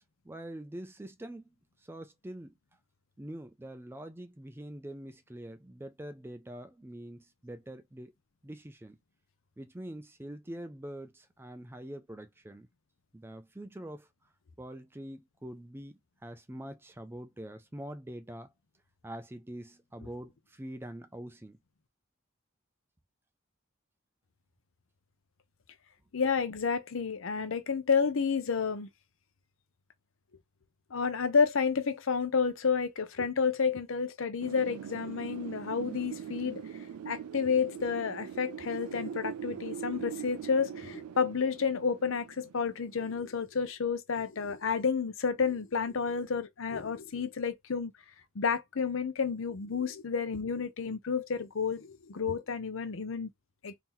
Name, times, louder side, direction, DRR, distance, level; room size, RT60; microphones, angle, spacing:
voice 1, 0.0-2.6 3.2-8.1 8.4-9.0 9.6-12.7 13.1-14.1 14.6-18.5 19.0-21.6, right 1 dB, 10° right, 0.4 m, -44 dB
voice 2, 26.1-28.9 30.9-47.9 48.4-53.3 53.6-53.7, left 5 dB, 60° left, 0.6 m, -30 dB
Wind, 34.4-43.1, right 8 dB, 90° right, 0.3 m, -42 dB
2.9 x 2.8 x 3.7 m
head